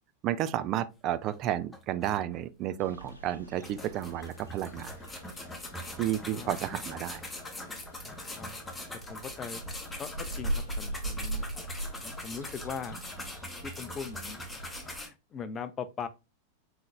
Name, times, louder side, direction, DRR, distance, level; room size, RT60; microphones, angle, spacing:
voice 1, 0.2-4.9 6.0-7.2, right 12 dB, 40° right, 0.4 m, -32 dB
sound 1, 1.3-1.4 1.7-2.7 3.1-3.2 3.6-15.1, left 1 dB, 10° left, 0.9 m, -42 dB
sound 2, 2.8-15.0, right 1 dB, 85° left, 0.8 m, -41 dB
voice 2, 5.9-6.5 8.0-8.6 9.1-9.6 10.0-10.1 10.4-11.5 12.0-13.0 13.6-14.4 14.9-16.1, left 6 dB, 25° left, 0.6 m, -40 dB
4.3 x 3.8 x 2.3 m
figure-of-eight pair, 90°, 0 cm